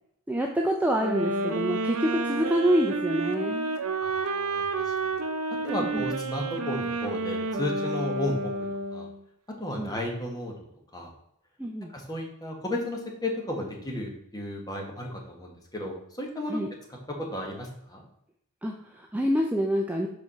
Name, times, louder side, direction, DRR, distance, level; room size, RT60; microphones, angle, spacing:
voice 1, 0.3-3.8 5.9-6.0 9.7-9.9 11.6-11.9 16.5-16.7 18.6-20.1, equal, 5° right, 1 dB, 0.4 m, -27 dB
sound 1, 1.0-9.2, right 3 dB, 75° right, 0.7 m, -30 dB
voice 2, 4.0-5.2 5.6-8.5 8.9-9.1 9.6-10.5 10.9-11.1 11.9-16.6 16.9-18.0, left 1 dB, 15° left, 0 dB, 1.3 m, -33 dB
5.0 x 4.7 x 5.6 m, 0.75 s
head